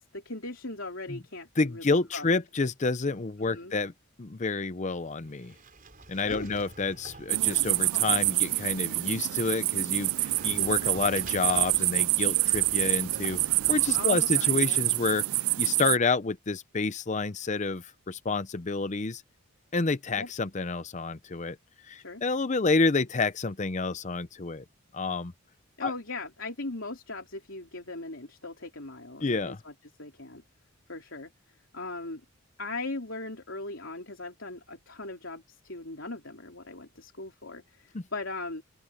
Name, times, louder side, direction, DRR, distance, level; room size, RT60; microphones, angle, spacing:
voice 1, 0.0-2.3 3.4-3.7 6.2-6.6 10.5-10.7 13.9-14.8 20.2-20.3 22.0-22.2 25.8-29.7 30.0-30.4 30.9-31.3 31.7-32.2 32.6-38.6, left 2 dB, 60° left, 3.6 m, -39 dB
voice 2, 1.6-3.9 4.2-5.5 6.1-15.2 15.6-19.2 19.7-21.6 21.8-24.6 24.9-25.3 25.8-25.9 29.2-29.6 37.9-38.0, left 3 dB, 35° left, 0.6 m, -29 dB
Sliding door, 4.9-14.3, right 2 dB, 40° right, 5.7 m, -48 dB
sound 1, 7.3-16.0, right 19 dB, 70° right, 0.3 m, -26 dB
open air
head